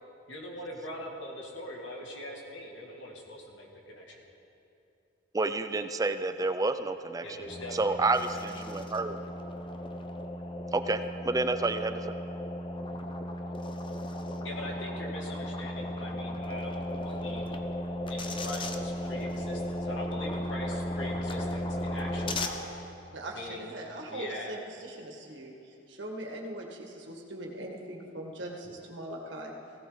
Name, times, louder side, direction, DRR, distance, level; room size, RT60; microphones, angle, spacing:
voice 1, 0.3-4.2 7.2-8.7 12.9-13.0 14.4-17.6 18.1-22.8 23.3-23.7 24.1-24.7, left 1 dB, 85° left, -1 dB, 2.4 m, -42 dB
voice 2, 5.3-7.3 7.7-9.2 10.7-12.0, right 3 dB, 20° right, 9 dB, 0.5 m, -29 dB
sound 1, 7.5-22.5, left 1 dB, 25° left, 0.8 m, -35 dB
voice 3, 23.1-29.5, right 1 dB, 75° right, 0 dB, 1.9 m, -41 dB
16.5 x 16.5 x 4.0 m, 2.7 s
head